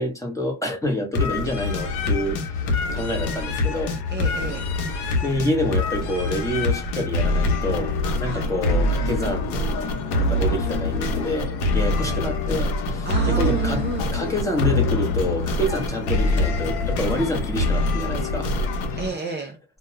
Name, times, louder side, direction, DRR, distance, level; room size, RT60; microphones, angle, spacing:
voice 1, 0.0-4.0 5.2-9.9 10.2-13.8 14.1-18.5, left 1 dB, 10° left, 0.9 m, -27 dB
sound 1, 1.1-19.1, left 2 dB, 80° left, 0.9 m, -24 dB
voice 2, 4.1-4.7 8.2-8.5 12.0-12.2 13.0-14.1 17.1-17.3 19.0-19.6, right 3 dB, 25° right, 0.5 m, -30 dB
2.3 x 2.2 x 3.0 m
cardioid pair, 105°, 39 cm